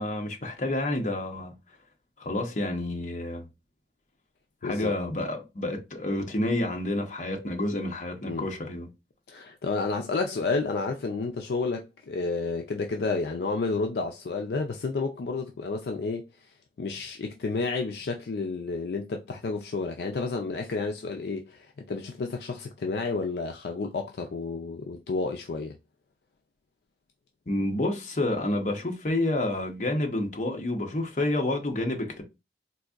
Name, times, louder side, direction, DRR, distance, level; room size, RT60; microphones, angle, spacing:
voice 1, 0.0-1.5 2.2-3.5 4.6-8.9 27.5-32.2, left 1 dB, 45° left, 0.8 m, -29 dB
voice 2, 4.6-4.9 8.3-8.5 9.3-16.3 16.8-25.7, left 3 dB, 70° left, 0.4 m, -31 dB
4.0 x 2.5 x 2.4 m
head